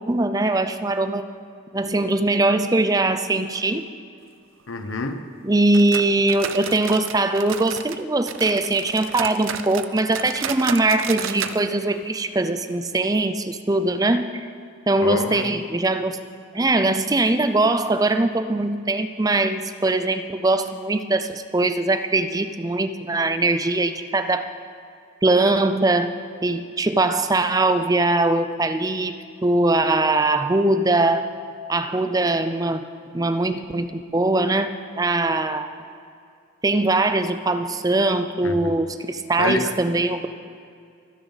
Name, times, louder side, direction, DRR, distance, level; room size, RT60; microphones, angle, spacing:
voice 1, 0.1-1.3 1.7-3.9 5.4-14.3 14.9-16.2 16.5-24.5 25.2-31.3 31.7-32.9 33.1-35.7 36.6-40.3, right 2 dB, 20° right, 10 dB, 0.5 m, -21 dB
voice 2, 4.7-5.2 15.0-15.5 38.4-38.7 39.4-39.7, left 3 dB, 85° left, 8 dB, 1.0 m, -27 dB
sound 1, 5.7-8.0 8.3-11.6 11.9-12.0 12.4-12.5 13.0-13.1, right 8 dB, 80° right, 0.6 m, -32 dB
24.5 x 10.5 x 4.1 m, 2.4 s
head